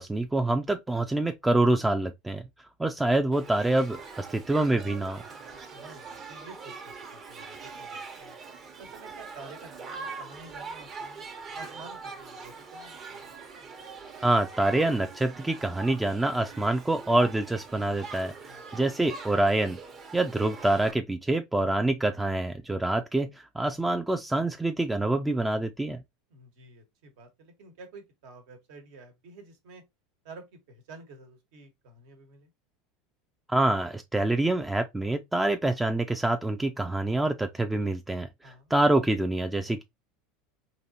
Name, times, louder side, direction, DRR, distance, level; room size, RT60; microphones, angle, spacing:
voice 1, 0.0-2.4 2.8-5.2 14.2-18.3 18.7-19.8 20.1-26.0 33.5-39.8, right 2 dB, 10° right, 0.4 m, -26 dB
Shout / Human group actions, 3.3-20.9, right 4 dB, 40° right, 1.0 m, -43 dB
voice 2, 5.7-8.4 8.8-11.2 11.5-13.3 18.5-18.8 26.3-29.8 30.2-32.5 38.4-38.7, right 3 dB, 70° right, 1.3 m, -50 dB
3.9 x 2.9 x 2.8 m
hypercardioid pair, 85°, 0 cm